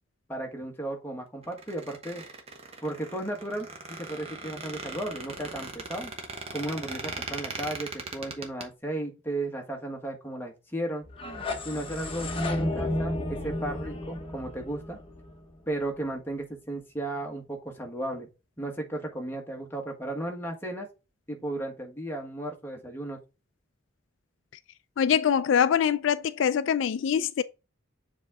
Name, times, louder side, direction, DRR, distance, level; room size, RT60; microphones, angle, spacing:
voice 1, 0.3-2.2 2.8-6.1 6.5-11.0 11.6-15.0 15.7-18.3 18.6-20.9 21.3-23.2, right 1 dB, 10° left, 1.4 m, -35 dB
Squeak, 1.4-8.6, right 3 dB, 30° right, 1.1 m, -39 dB
sound 1, 11.0-15.9, left 1 dB, 25° left, 1.1 m, -32 dB
voice 2, 25.0-27.4, left 8 dB, 70° left, 0.3 m, -24 dB
7.4 x 3.7 x 3.5 m
head